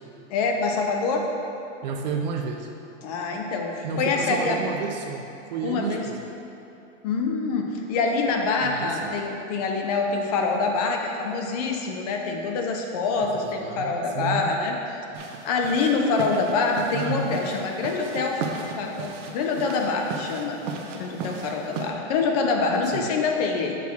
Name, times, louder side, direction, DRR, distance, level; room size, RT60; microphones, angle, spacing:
voice 1, 0.3-1.3 3.0-4.6 5.6-6.0 7.0-14.8 15.4-18.4 18.8-20.6 20.9-23.8, left 4 dB, 35° left, 2 dB, 0.5 m, -25 dB
voice 2, 1.8-2.7 3.8-6.3 8.6-9.1 13.2-14.5 16.9-17.3 22.9-23.1, right 4 dB, 35° right, 2 dB, 0.4 m, -31 dB
sound 1, 15.1-21.9, right 4 dB, 70° right, 1.0 m, -36 dB
6.5 x 6.0 x 3.5 m, 2.9 s
supercardioid pair, 155°, 38 cm